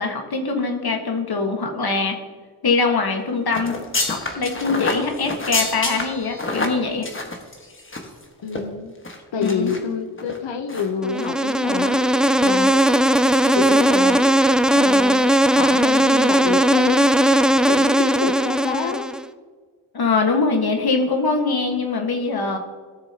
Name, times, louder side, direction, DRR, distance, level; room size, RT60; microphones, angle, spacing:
voice 1, 0.0-2.2 2.6-3.8 4.0-7.1 9.4-9.7 19.9-22.6, left 4 dB, 55° left, 3 dB, 1.6 m, -22 dB
sound 1, 3.5-8.2 8.5-8.6 9.0-9.8 10.2-10.4 10.7-10.9 11.2-11.3, left 2 dB, 25° left, 1.5 m, -27 dB
voice 2, 8.4-8.9 9.3-12.9 13.5-14.2 14.7-17.4 17.7-19.1, left 5 dB, 75° left, 5 dB, 1.0 m, -28 dB
Insect, 11.0-19.2, right 1 dB, ahead, 0.3 m, -18 dB
16.5 x 6.9 x 2.9 m, 1.5 s
wide cardioid pair, 100°, 44 cm